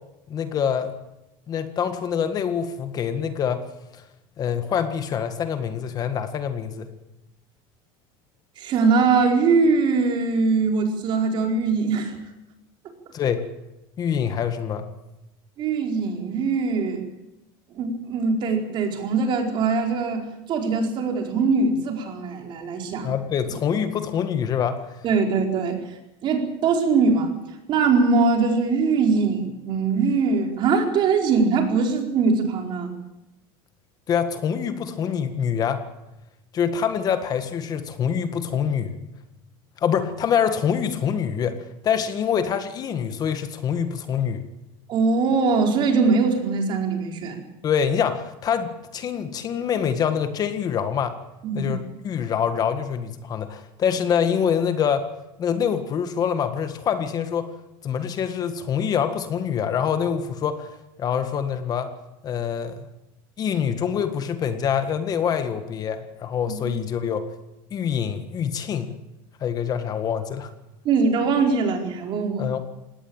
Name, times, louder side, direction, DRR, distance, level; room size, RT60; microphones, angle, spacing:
voice 1, 0.3-0.9 1.5-3.6 3.9-4.0 4.4-6.9 13.1-13.5 14.0-14.9 23.0-25.0 34.1-35.8 36.5-38.9 39.8-41.6 41.8-44.5 47.6-51.2 51.5-55.1 55.4-57.5 57.8-61.9 62.2-62.9 63.4-67.3 67.7-68.9 69.4-70.5 72.4-72.6, left 8 dB, 35° left, 9 dB, 1.7 m, -25 dB
voice 2, 8.6-12.2 15.6-17.0 17.7-23.1 25.0-25.8 26.2-27.3 27.7-32.9 44.9-47.4 51.4-51.7 66.5-66.8 70.8-72.5, right 4 dB, 40° right, 3 dB, 4.4 m, -22 dB
20.0 x 17.5 x 8.9 m, 0.94 s
supercardioid pair, 140°, 12 cm